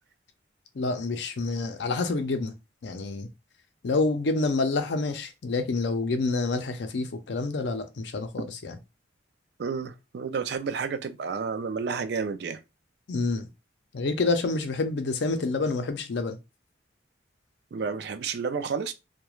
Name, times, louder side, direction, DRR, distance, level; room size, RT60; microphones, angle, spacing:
voice 1, 0.7-2.5 2.8-3.3 3.8-8.8 13.1-13.5 13.9-16.4, left 3 dB, 65° left, 0.5 m, -28 dB
voice 2, 9.6-12.6 17.7-18.9, right 5 dB, 60° right, 0.3 m, -31 dB
2.3 x 2.2 x 3.0 m
head